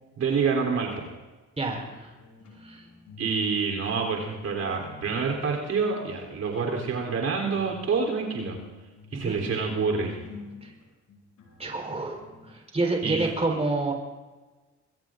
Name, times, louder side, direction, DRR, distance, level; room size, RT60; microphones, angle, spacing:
voice 1, 0.2-1.1 3.2-8.6 9.1-10.2 13.0-13.3, right 5 dB, 60° right, 0 dB, 3.5 m, -27 dB
voice 2, 1.6-2.1 2.6-2.8 9.1-9.4 10.6-10.7 11.6-12.2 12.5-13.9, right 2 dB, 20° right, 1 dB, 4.0 m, -28 dB
sound 1, 1.8-3.4 3.6-5.4 6.0-6.4 7.0-12.5, left 4 dB, 75° left, 7.6 m, -48 dB
25.5 x 22.0 x 2.6 m, 1.2 s
cardioid pair, 90°, 30 cm